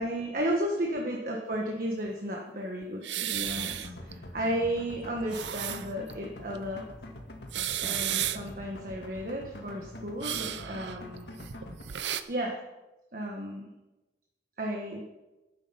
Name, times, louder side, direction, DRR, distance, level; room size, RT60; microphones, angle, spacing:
voice 1, 0.0-6.8 7.8-11.3 12.3-12.5 13.1-13.7 14.6-15.0, right 1 dB, 50° right, 0 dB, 1.4 m, -33 dB
sound 1, 3.0-4.1 4.5-4.6 5.1-6.1 6.6-6.7 7.4-8.6 10.2-12.2, right 11 dB, 80° right, 0.7 m, -33 dB
sound 2, 3.3-11.8, left 1 dB, 65° left, 1.8 m, -44 dB
13.0 x 9.2 x 5.8 m, 1.1 s
head